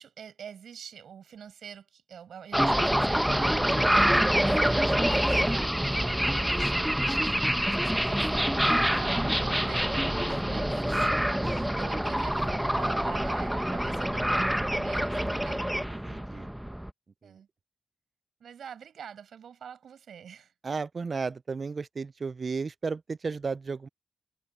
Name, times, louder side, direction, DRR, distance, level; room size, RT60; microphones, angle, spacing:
voice 1, 0.0-11.1 11.4-15.8 17.2-17.5 18.4-20.5, right 8 dB, 80° right, 6.9 m, -45 dB
sound 1, 2.5-16.9, equal, 5° right, 1.2 m, -26 dB
voice 2, 16.0-16.5 17.2-17.4 20.6-23.9, right 4 dB, 55° right, 0.5 m, -34 dB
supercardioid pair, 45°, 0 cm